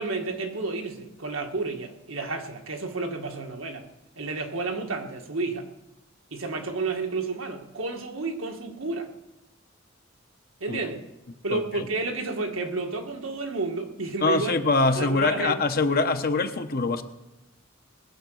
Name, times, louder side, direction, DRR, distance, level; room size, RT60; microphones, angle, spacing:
voice 1, 0.0-3.9 4.2-5.7 6.3-9.1 10.6-11.0 11.4-14.5 15.0-15.6, right 3 dB, 80° right, 3 dB, 1.8 m, -31 dB
voice 2, 11.5-11.9 14.2-17.0, left 3 dB, 50° left, 7 dB, 1.0 m, -24 dB
21.0 x 7.9 x 6.4 m, 0.96 s
head